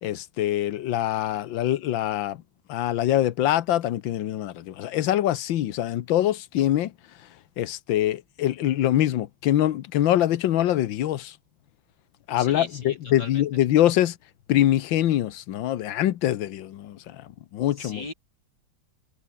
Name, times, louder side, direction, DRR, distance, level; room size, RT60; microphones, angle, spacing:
voice 1, 0.0-2.4 2.7-6.9 7.6-11.3 12.3-14.2 14.5-18.0, left 12 dB, 75° left, 1.6 m, -24 dB
voice 2, 12.4-13.4 17.8-18.1, left 2 dB, 55° left, 6.6 m, -38 dB
omnidirectional pair, 2.2 m